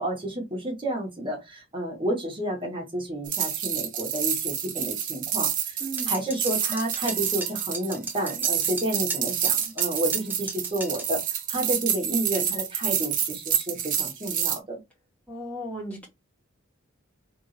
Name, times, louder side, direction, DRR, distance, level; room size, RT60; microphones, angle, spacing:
voice 1, 0.0-5.8 6.1-14.8, right 1 dB, 25° right, 1.8 m, -31 dB
sound 1, 3.2-14.6, right 9 dB, 40° right, 1.0 m, -28 dB
voice 2, 5.8-6.2 15.3-16.1, right 1 dB, 5° left, 2.4 m, -35 dB
sound 2, 6.0-11.1, right 3 dB, 10° right, 1.1 m, -36 dB
3.7 x 3.7 x 3.3 m
head